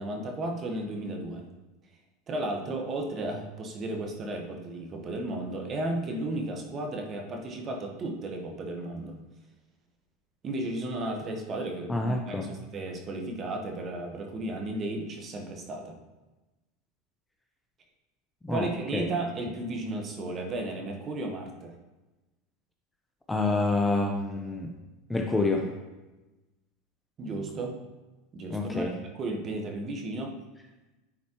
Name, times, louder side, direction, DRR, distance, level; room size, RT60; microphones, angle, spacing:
voice 1, 0.0-1.5 2.3-9.2 10.4-16.0 18.5-21.8 27.2-27.8 28.3-30.3, right 2 dB, 35° right, 2 dB, 1.2 m, -34 dB
voice 2, 11.9-12.5 18.4-19.1 23.3-24.7 25.1-25.7 28.5-29.0, left 2 dB, 10° left, 3 dB, 0.6 m, -28 dB
9.8 x 4.2 x 3.0 m, 1.1 s
supercardioid pair, 110°, 0 cm